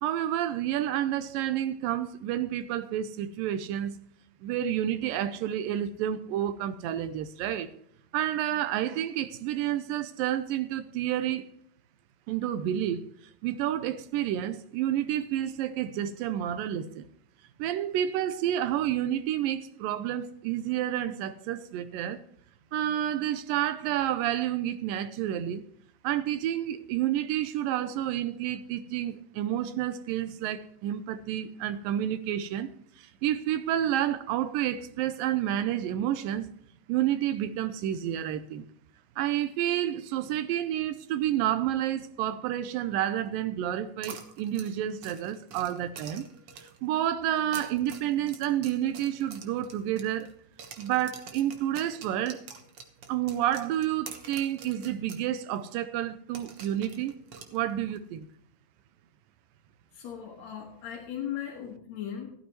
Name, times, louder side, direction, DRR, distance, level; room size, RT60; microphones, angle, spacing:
voice 1, 0.0-3.9 4.4-7.7 8.1-11.5 12.3-13.0 13.4-17.0 17.6-22.2 22.7-25.6 26.0-32.7 33.0-36.5 36.9-38.6 39.2-46.3 46.6-50.3 50.8-52.4 53.1-57.1 57.5-58.3, right 11 dB, 85° right, 2.3 m, -29 dB
sound 1, 44.0-46.9 47.4-50.3 50.6-55.3 55.6-55.7 56.3-58.0, right 6 dB, 60° right, 1.6 m, -46 dB
voice 2, 59.9-62.3, left 9 dB, 55° left, 2.6 m, -37 dB
14.5 x 12.5 x 3.0 m
omnidirectional pair, 4.1 m